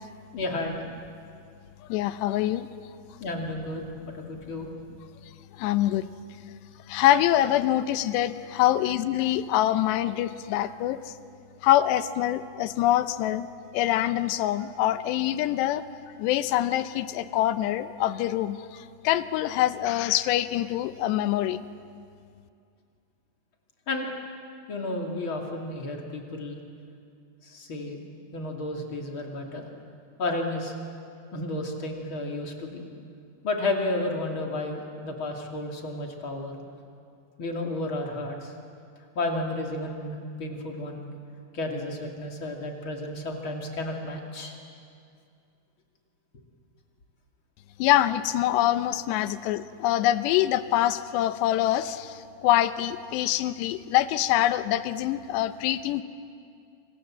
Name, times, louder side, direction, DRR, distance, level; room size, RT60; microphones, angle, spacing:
voice 1, 0.3-0.8 3.2-3.8 4.1-4.7 23.9-24.1 24.7-26.6 27.4-28.0 28.3-29.7 30.2-30.7 31.3-32.8 33.4-36.6 37.4-38.5 39.1-41.1 41.5-44.5, left 2 dB, 35° left, 1 dB, 2.8 m, -32 dB
voice 2, 1.9-2.7 5.6-6.1 6.9-11.1 11.6-13.5 13.7-15.8 16.2-21.6 47.8-56.0, left 13 dB, 85° left, 13 dB, 3.0 m, -25 dB
28.0 x 26.0 x 7.6 m, 2.4 s
omnidirectional pair, 4.9 m